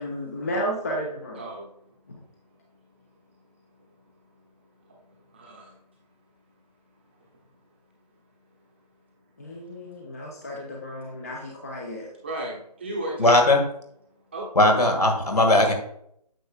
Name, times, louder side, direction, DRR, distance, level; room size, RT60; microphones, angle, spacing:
voice 1, 0.0-1.4 9.4-12.1, equal, 25° left, -1 dB, 0.7 m, -32 dB
voice 2, 1.3-2.1 2.4-5.8 7.1-7.2 9.6-9.7 11.0-11.1 12.1-13.4 14.1-14.5, right 2 dB, 15° right, -2 dB, 0.9 m, -38 dB
voice 3, 13.2-13.6 14.6-15.7, left 1 dB, 65° left, 3 dB, 2.0 m, -18 dB
9.0 x 7.0 x 2.4 m, 0.72 s
figure-of-eight pair, 155°, 21 cm